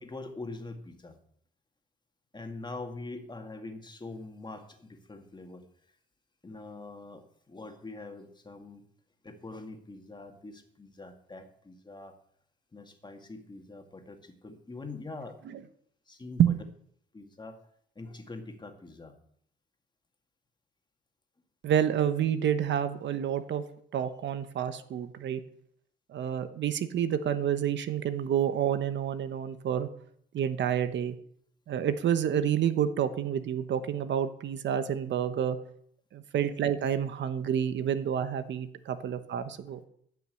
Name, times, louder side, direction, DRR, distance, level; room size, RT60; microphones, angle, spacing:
voice 1, 0.0-1.2 2.3-5.6 6.4-8.8 9.2-12.1 12.7-15.4 16.1-16.4 17.1-17.6 18.0-19.1 38.9-39.0, left 3 dB, 20° left, 5 dB, 2.1 m, -44 dB
voice 2, 21.6-23.6 23.9-25.4 26.1-29.9 30.3-31.2 31.7-35.6 36.1-39.8, right 9 dB, 65° right, 11 dB, 1.1 m, -29 dB
15.0 x 5.9 x 7.8 m, 0.66 s
cardioid pair, 90°, 20 cm